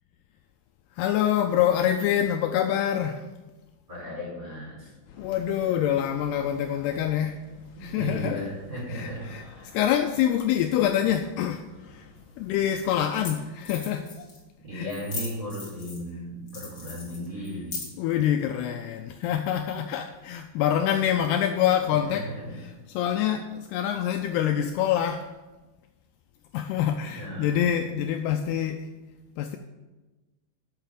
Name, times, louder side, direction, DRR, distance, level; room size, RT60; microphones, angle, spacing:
voice 1, 0.9-3.3 5.2-7.4 7.8-8.4 8.9-9.4 9.7-12.1 12.4-14.3 14.7-14.9 18.0-22.3 22.6-25.3 26.5-28.9 29.4-29.6, left 10 dB, 85° left, 6 dB, 2.4 m, -26 dB
voice 2, 3.9-4.9 7.8-9.2 9.5-9.7 14.7-17.9 21.9-22.6 27.1-27.6, equal, 20° right, -4 dB, 4.3 m, -36 dB
sound 1, 5.0-13.3, left 4 dB, 65° left, 2.3 m, -51 dB
sound 2, 12.2-12.3 13.0-13.1 13.2-13.3 13.6-14.4 14.9-16.1 16.5-18.1, left 4 dB, 35° left, 2.1 m, -38 dB
10.5 x 6.6 x 6.8 m, 1.2 s
omnidirectional pair, 4.9 m